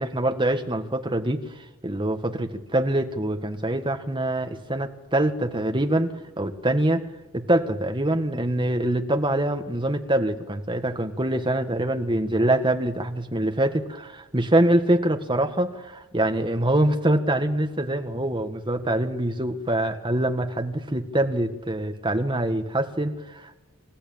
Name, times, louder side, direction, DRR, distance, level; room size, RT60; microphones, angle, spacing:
voice 1, 0.0-7.0 7.3-23.6, right 1 dB, 20° right, 5 dB, 1.7 m, -24 dB
27.5 x 15.0 x 8.8 m, 1.1 s
head